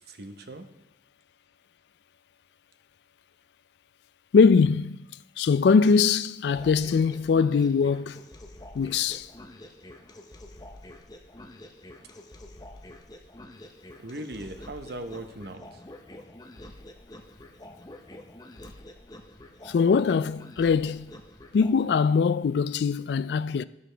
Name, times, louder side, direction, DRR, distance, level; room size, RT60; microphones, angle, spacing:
voice 1, 0.1-0.6 14.0-15.6, right 1 dB, 65° right, 0.9 m, -38 dB
voice 2, 4.3-5.0 5.4-8.2 8.7-9.3 19.7-21.1 21.5-23.6, left 5 dB, 75° left, 0.3 m, -22 dB
sound 1, 6.5-22.1, left 1 dB, 20° left, 0.7 m, -47 dB
12.0 x 11.0 x 3.4 m
head